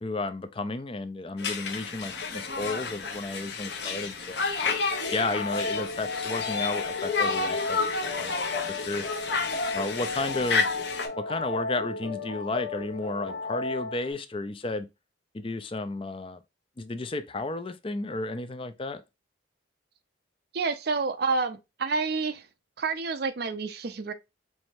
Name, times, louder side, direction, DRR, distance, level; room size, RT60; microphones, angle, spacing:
voice 1, 0.0-4.4 5.1-7.8 8.2-8.3 8.7-9.0 9.7-10.7 11.2-14.9 15.3-16.4 16.8-19.0, left 2 dB, 25° left, 0.4 m, -33 dB
Conversation, 1.4-11.1, left 4 dB, 55° left, 0.9 m, -31 dB
sound 1, 4.9-14.1, left 3 dB, 75° left, 1.4 m, -34 dB
voice 2, 20.5-22.5 22.8-24.1, right 4 dB, 50° right, 0.5 m, -29 dB
4.7 x 3.2 x 2.6 m
head